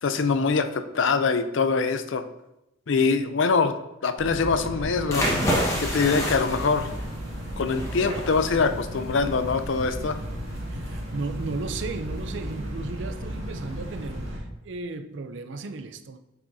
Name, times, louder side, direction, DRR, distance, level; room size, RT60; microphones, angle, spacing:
voice 1, 0.0-2.2 2.9-3.7 4.0-5.3 5.8-6.9 7.6-10.2, left 4 dB, 65° left, 0.5 m, -23 dB
sound 1, 4.2-14.4, equal, 80° right, 1.9 m, -34 dB
sound 2, 5.0-14.3, equal, 15° left, 1.2 m, -31 dB
voice 2, 10.7-16.2, right 3 dB, 65° right, 0.5 m, -35 dB
8.4 x 5.9 x 2.7 m
head